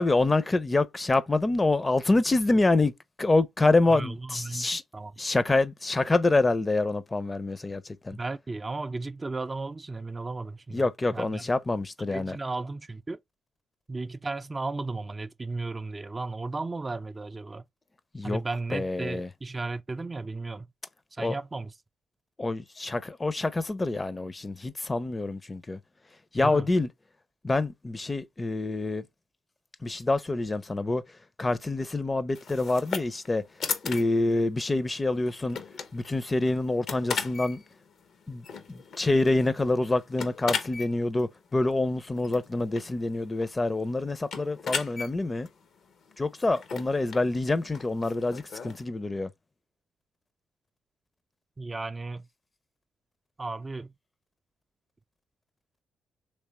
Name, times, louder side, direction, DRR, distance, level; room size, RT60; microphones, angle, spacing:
voice 1, 0.0-2.9 3.2-4.8 5.2-8.2 10.7-12.4 18.1-18.4 18.7-19.3 21.2-21.3 22.4-25.8 26.3-26.9 27.4-29.0 29.8-31.0 31.4-33.4 33.8-35.6 35.9-37.6 38.3-45.5 46.2-49.3, left 2 dB, 30° left, 0.5 m, -26 dB
voice 2, 3.9-5.1 8.1-11.4 12.1-13.2 13.9-17.7 18.2-20.7 21.1-21.7 26.4-26.7 51.6-52.3 53.4-53.9, right 3 dB, 30° right, 0.3 m, -35 dB
sound 1, 32.3-48.8, left 5 dB, 65° left, 0.6 m, -38 dB
3.2 x 3.2 x 3.0 m
hypercardioid pair, 45°, 0 cm